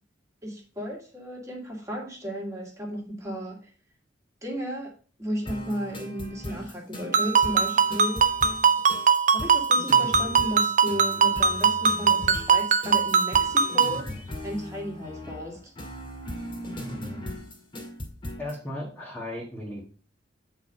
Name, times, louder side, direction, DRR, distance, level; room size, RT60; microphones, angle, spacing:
voice 1, 0.4-3.7 4.4-4.9 5.2-8.2 9.3-14.1 14.4-15.6, equal, 15° right, -1 dB, 2.2 m, -34 dB
sound 1, 5.5-18.6, left 1 dB, 25° left, 2.3 m, -38 dB
Ringtone, 7.1-14.0, right 5 dB, 40° right, 0.5 m, -21 dB
voice 2, 18.4-19.8, left 1 dB, 10° left, -4 dB, 1.4 m, -35 dB
8.1 x 4.2 x 5.0 m, 0.38 s
head